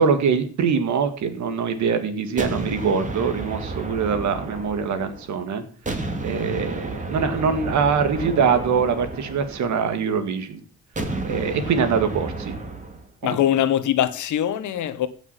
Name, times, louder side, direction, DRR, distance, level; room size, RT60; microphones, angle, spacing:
voice 1, 0.0-5.6 6.2-10.6 11.2-12.5 13.2-13.4, right 6 dB, 70° right, 1.9 m, -23 dB
sound 1, 2.4-5.4 5.9-10.1 11.0-13.1, right 2 dB, 25° right, 2.4 m, -32 dB
voice 2, 13.2-15.1, left 11 dB, 75° left, 1.2 m, -22 dB
16.5 x 6.1 x 5.7 m
cardioid pair, 90°, 30 cm